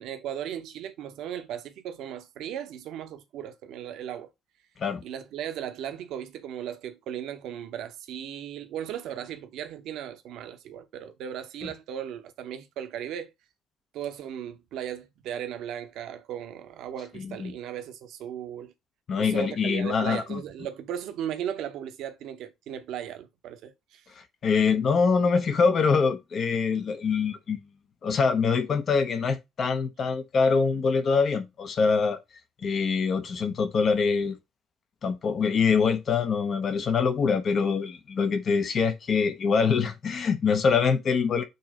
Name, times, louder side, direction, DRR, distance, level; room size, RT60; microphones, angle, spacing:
voice 1, 0.0-4.3 5.0-13.3 13.9-18.7 19.2-24.0, right 10 dB, 65° right, 0.8 m, -37 dB
voice 2, 19.1-20.4 24.4-27.6 28.0-32.2 32.6-34.4 35.0-41.4, left 5 dB, 50° left, 0.9 m, -24 dB
6.8 x 2.9 x 5.1 m
figure-of-eight pair, 45°, 0 cm